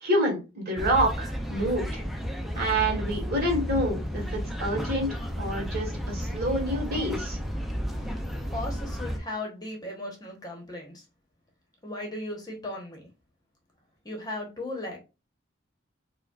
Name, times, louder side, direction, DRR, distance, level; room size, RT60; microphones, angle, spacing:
voice 1, 0.0-2.0 2.5-7.4, right 1 dB, 50° right, -1 dB, 1.5 m, -27 dB
sound 1, 0.8-9.2, equal, ahead, 0.4 m, -32 dB
voice 2, 8.0-11.0 11.8-13.0 14.0-15.0, left 1 dB, 20° left, 0 dB, 0.9 m, -37 dB
4.7 x 2.2 x 2.3 m, 0.28 s
head